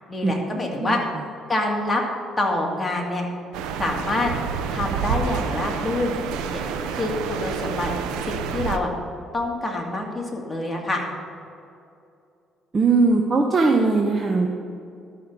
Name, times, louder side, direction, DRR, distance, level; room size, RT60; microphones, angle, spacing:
voice 1, 0.1-1.0 1.5-2.0 2.4-3.3 3.8-4.3 4.7-6.1 6.5-7.9 8.2-8.9 9.3-11.0, left 2 dB, 15° left, -1 dB, 2.4 m, -26 dB
sound 1, 3.5-8.8, right 6 dB, 90° right, 0.6 m, -28 dB
voice 2, 12.7-14.5, right 3 dB, 35° right, 1 dB, 1.0 m, -19 dB
12.0 x 5.6 x 6.9 m, 2.6 s
cardioid pair, 90°, 0 cm